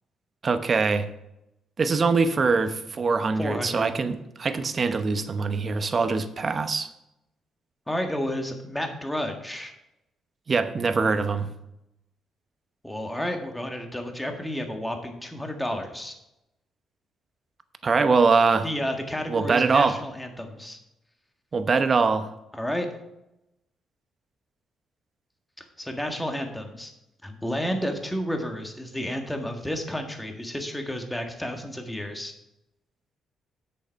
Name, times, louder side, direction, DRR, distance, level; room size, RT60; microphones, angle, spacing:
voice 1, 0.4-1.1 1.8-6.9 10.5-11.5 17.8-18.7 19.3-19.9 21.5-22.3, right 4 dB, 40° right, 10 dB, 0.9 m, -23 dB
voice 2, 3.4-3.9 7.9-9.7 12.8-16.2 18.6-20.8 22.5-22.9 25.6-26.9 27.2-32.3, equal, 10° left, 4 dB, 1.6 m, -31 dB
8.2 x 6.6 x 5.6 m, 0.87 s
cardioid pair, 90°, 0 cm